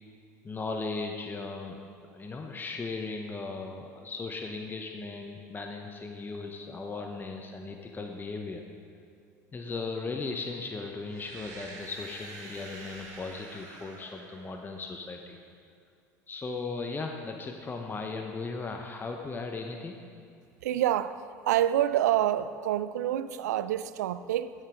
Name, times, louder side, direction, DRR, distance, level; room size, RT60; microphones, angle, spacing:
voice 1, 0.4-8.6 9.5-15.4 16.3-20.0, left 3 dB, 20° left, 0.9 m, -37 dB
sound 1, 11.1-15.0, right 2 dB, 50° right, 2.7 m, -47 dB
voice 2, 20.6-21.2 21.5-24.5, right 12 dB, 85° right, 0.4 m, -27 dB
9.4 x 9.0 x 5.0 m
hypercardioid pair, 80°, 9 cm